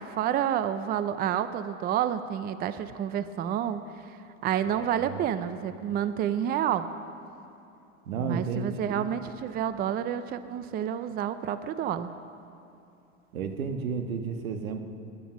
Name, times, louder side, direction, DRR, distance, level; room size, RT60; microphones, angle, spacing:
voice 1, 0.0-4.2 4.4-6.9 8.2-12.1, right 9 dB, 25° right, 12 dB, 0.5 m, -29 dB
voice 2, 4.7-5.2 8.1-9.1 13.3-14.8, right 5 dB, 85° right, 6 dB, 1.6 m, -32 dB
20.5 x 10.5 x 6.1 m, 2.7 s
hypercardioid pair, 115°, 41 cm